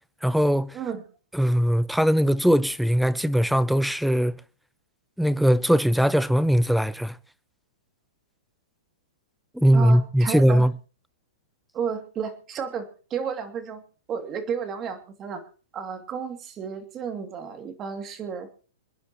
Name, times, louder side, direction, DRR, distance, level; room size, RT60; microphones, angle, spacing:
voice 1, 0.2-0.8 1.3-4.4 5.2-7.2 9.5-10.7, equal, ahead, 0.7 m, -20 dB
voice 2, 9.7-10.7 11.7-13.8 14.1-15.4 15.7-18.5, right 7 dB, 25° right, 2.6 m, -32 dB
27.0 x 10.0 x 3.1 m
hypercardioid pair, 145°, 0 cm